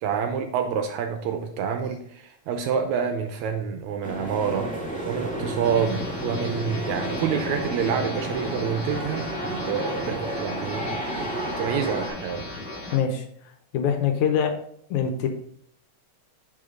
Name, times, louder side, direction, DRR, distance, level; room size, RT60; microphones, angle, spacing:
voice 1, 0.0-4.7 5.1-12.5, right 7 dB, 80° right, 6 dB, 1.8 m, -28 dB
sound 1, 4.0-12.1, right 1 dB, 10° left, 0.4 m, -32 dB
sound 2, 5.6-13.0, left 2 dB, 35° left, 0.8 m, -36 dB
voice 2, 12.9-13.3 13.7-14.5 14.9-15.3, left 7 dB, 75° left, 5 dB, 2.1 m, -23 dB
6.9 x 5.0 x 3.8 m, 0.67 s
omnidirectional pair, 3.7 m